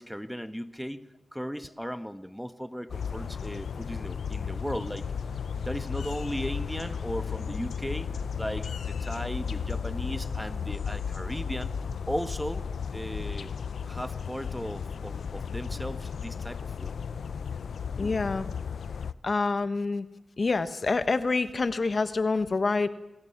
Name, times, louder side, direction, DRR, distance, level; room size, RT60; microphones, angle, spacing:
voice 1, 0.0-5.1 5.6-11.7 12.1-12.6 12.9-13.5 13.8-16.9, equal, ahead, 11 dB, 1.6 m, -36 dB
sound 1, 2.9-19.1, left 6 dB, 80° left, 0.8 m, -34 dB
voice 2, 18.0-18.5 19.2-20.1 20.4-22.9, left 3 dB, 50° left, 13 dB, 1.4 m, -27 dB
27.0 x 19.5 x 7.4 m, 0.99 s
cardioid pair, 55°, 0 cm